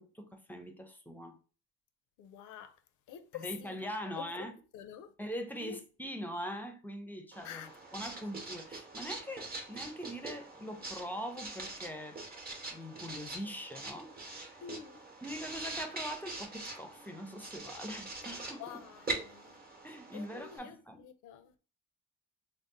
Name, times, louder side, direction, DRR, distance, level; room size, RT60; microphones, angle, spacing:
voice 1, 0.0-1.4 3.3-4.5 5.2-7.6 7.9-12.2 12.7-14.6 15.2-18.6 19.8-21.0, equal, 5° left, 0.5 m, -42 dB
voice 2, 2.2-2.8 3.1-3.9 4.2-4.5 4.7-5.1 5.6-5.8 7.4-7.7 14.6-15.1 18.6-19.6 20.1-21.5, left 9 dB, 85° left, 0.5 m, -47 dB
Writing, 7.3-20.6, right 2 dB, 30° right, 0.8 m, -43 dB
2.6 x 2.0 x 3.9 m
cardioid pair, 90°, 30 cm